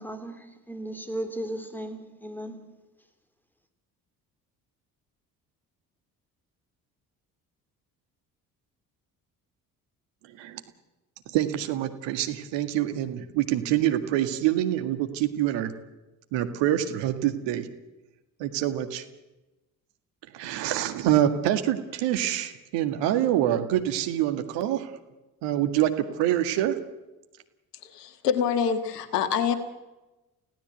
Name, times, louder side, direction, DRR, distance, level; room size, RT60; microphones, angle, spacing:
voice 1, 0.0-2.6, right 1 dB, 5° left, 9 dB, 3.9 m, -36 dB
voice 2, 11.3-15.7 16.3-17.7 18.4-19.0 20.3-24.9 25.4-26.8, right 12 dB, 65° right, 8 dB, 1.9 m, -26 dB
voice 3, 27.8-29.6, left 7 dB, 80° left, 11 dB, 1.7 m, -26 dB
29.5 x 17.0 x 8.0 m, 1.1 s
figure-of-eight pair, 45°, 47 cm